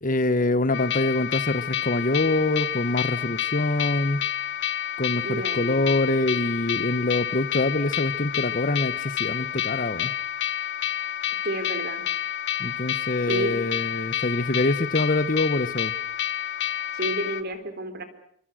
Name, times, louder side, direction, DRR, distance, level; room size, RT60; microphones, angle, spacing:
voice 1, 0.0-4.3 5.0-10.1 12.6-15.9, left 2 dB, 35° left, 14 dB, 1.1 m, -25 dB
sound 1, 0.7-17.4, left 11 dB, 55° left, 1.6 m, -29 dB
voice 2, 5.2-5.9 11.4-12.1 13.3-13.6 16.9-18.0, right 1 dB, 45° right, 9 dB, 4.1 m, -30 dB
28.5 x 24.5 x 6.4 m, 0.64 s
head